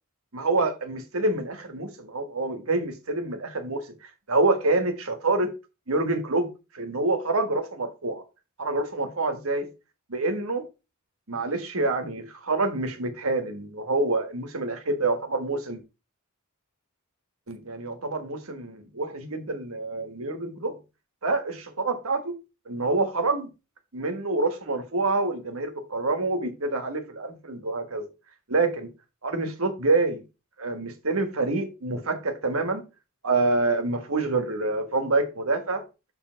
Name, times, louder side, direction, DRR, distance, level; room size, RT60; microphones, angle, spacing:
voice 1, 0.3-3.8 4.3-5.5 5.9-8.2 8.6-9.7 10.1-10.6 11.3-15.8 17.5-20.8 21.2-22.4 22.7-23.5 23.9-28.1 28.5-28.9 29.2-30.2 30.6-32.8 33.2-35.8, right 2 dB, 80° right, 1.5 m, -27 dB
7.1 x 3.5 x 6.2 m
head